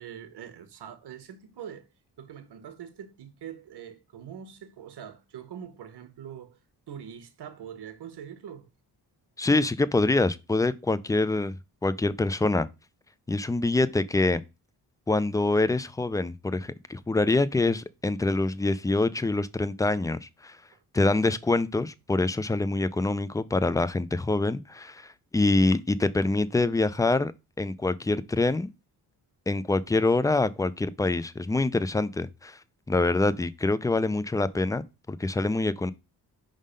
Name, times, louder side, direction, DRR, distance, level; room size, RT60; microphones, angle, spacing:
voice 1, 0.0-1.9 2.2-6.6 6.9-8.7 20.7-20.8, right 9 dB, 80° right, 1.2 m, -43 dB
voice 2, 9.4-11.6 11.8-12.7 13.3-14.4 15.1-20.6 20.9-27.3 27.6-28.7 29.5-32.6 32.9-34.8 35.1-35.9, left 2 dB, 10° left, 0.3 m, -25 dB
5.2 x 3.8 x 5.0 m
cardioid pair, 95°, 40 cm